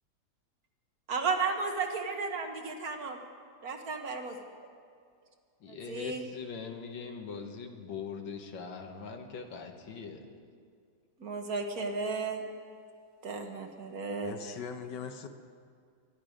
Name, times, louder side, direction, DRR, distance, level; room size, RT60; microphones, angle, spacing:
voice 1, 1.1-3.2 3.6-4.4 5.7-6.2 11.2-12.4 13.2-14.3, right 4 dB, 55° right, 4 dB, 1.5 m, -34 dB
voice 2, 5.6-10.2, left 6 dB, 85° left, 4 dB, 2.1 m, -41 dB
voice 3, 14.2-15.3, left 6 dB, 70° left, 7 dB, 1.5 m, -40 dB
23.5 x 11.0 x 5.1 m, 2.2 s
omnidirectional pair, 2.0 m